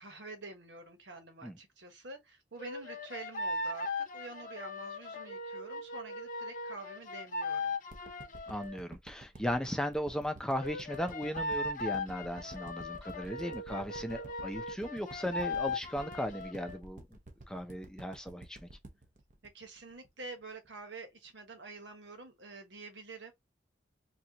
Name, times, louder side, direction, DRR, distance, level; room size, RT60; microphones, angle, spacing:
voice 1, 0.0-7.8 19.4-23.3, right 3 dB, 90° right, 1.2 m, -47 dB
sound 1, 2.6-8.8 10.6-16.8, left 2 dB, 50° left, 0.7 m, -38 dB
sound 2, 7.9-20.2 20.6-20.7, right 1 dB, 45° right, 0.8 m, -51 dB
voice 2, 8.5-17.1 17.5-18.7, equal, 5° left, 0.5 m, -37 dB
4.2 x 2.4 x 2.9 m
head